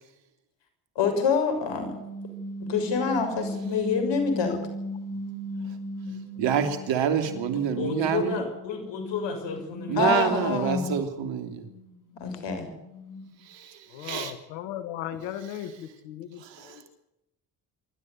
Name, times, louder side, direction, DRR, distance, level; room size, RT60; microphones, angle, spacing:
voice 1, 0.9-1.9 2.7-4.6 7.5-10.9 12.2-12.7, left 5 dB, 70° left, 7 dB, 6.5 m, -27 dB
sound 1, 1.6-6.9 7.2-13.5, left 1 dB, 45° left, 5.3 m, -38 dB
voice 2, 6.4-8.4 9.9-11.7 13.4-14.3 16.4-17.0, right 8 dB, 80° right, 8 dB, 3.2 m, -27 dB
voice 3, 13.9-16.8, left 11 dB, 90° left, 12 dB, 1.5 m, -37 dB
25.5 x 13.0 x 9.6 m, 0.88 s
supercardioid pair, 55°, 44 cm